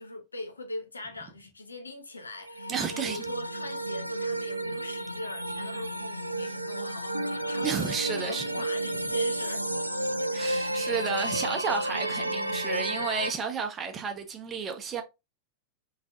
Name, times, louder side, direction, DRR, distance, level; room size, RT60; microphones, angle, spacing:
voice 1, 0.0-9.8, left 2 dB, 80° left, 0.9 m, -41 dB
sound 1, 2.3-13.3, right 1 dB, 85° right, 0.3 m, -32 dB
voice 2, 2.7-3.2 7.6-8.4 10.3-15.0, right 6 dB, 25° right, 1.0 m, -32 dB
3.9 x 3.7 x 2.4 m
figure-of-eight pair, 90°, 0 cm